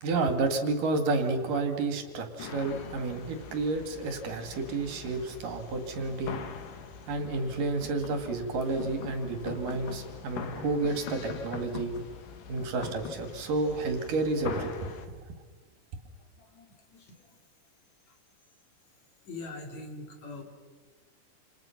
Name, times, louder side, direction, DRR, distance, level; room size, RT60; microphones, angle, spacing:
voice 1, 0.0-6.4 7.1-11.9 12.5-14.9, right 3 dB, 70° right, 7 dB, 3.8 m, -30 dB
sound 1, 2.4-15.1, left 7 dB, 75° left, 3.3 m, -43 dB
voice 2, 16.4-17.2 19.3-20.4, left 3 dB, 55° left, 4 dB, 4.0 m, -43 dB
28.5 x 28.5 x 5.9 m, 1.5 s
omnidirectional pair, 3.9 m